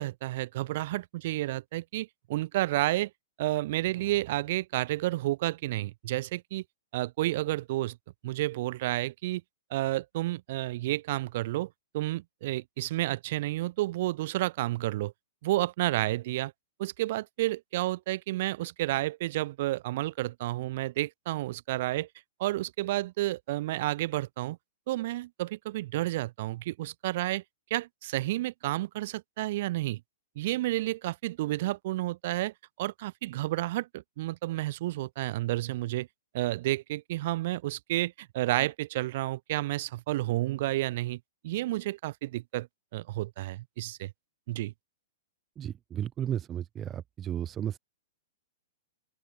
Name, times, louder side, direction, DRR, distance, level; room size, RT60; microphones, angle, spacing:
voice 1, 0.0-3.1 3.4-6.6 6.9-8.0 8.2-9.4 9.7-11.7 11.9-15.1 15.4-16.5 16.8-22.1 22.4-24.6 24.9-27.4 27.7-30.0 30.3-36.1 36.3-42.7 42.9-44.1 44.5-44.7, right 17 dB, 40° right, 3.2 m, -31 dB
voice 2, 45.6-47.8, right 10 dB, 15° right, 0.8 m, -34 dB
open air
hypercardioid pair, 175°, 0 cm